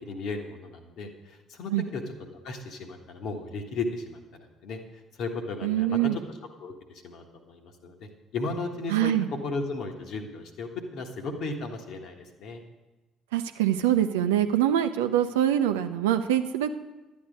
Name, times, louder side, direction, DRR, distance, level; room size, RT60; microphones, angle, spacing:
voice 1, 0.0-4.8 5.2-6.2 6.6-8.0 8.3-9.1 9.4-12.6, left 3 dB, 55° left, 4 dB, 1.4 m, -35 dB
voice 2, 5.6-6.2 8.9-9.3 13.3-16.8, right 11 dB, 70° right, 9 dB, 0.6 m, -24 dB
12.0 x 9.6 x 5.2 m, 1.1 s
figure-of-eight pair, 50°, 0 cm